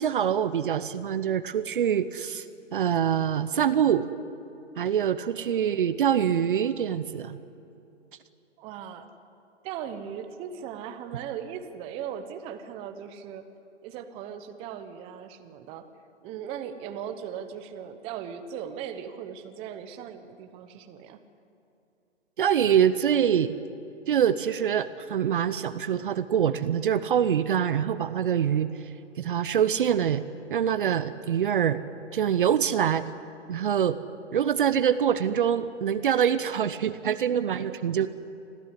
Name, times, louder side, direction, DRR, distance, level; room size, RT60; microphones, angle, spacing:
voice 1, 0.0-2.4 2.7-4.1 4.8-7.4 22.4-23.5 24.1-28.7 29.2-30.2 30.5-31.8 32.1-33.0 33.5-34.0 34.3-38.1, right 9 dB, 45° right, 13 dB, 0.9 m, -24 dB
voice 2, 5.2-5.7 8.6-9.1 9.6-13.5 13.8-15.9 16.2-21.2 37.5-37.8, right 8 dB, 15° right, 8 dB, 1.0 m, -38 dB
25.5 x 15.0 x 10.0 m, 2.7 s
figure-of-eight pair, 140°, 36 cm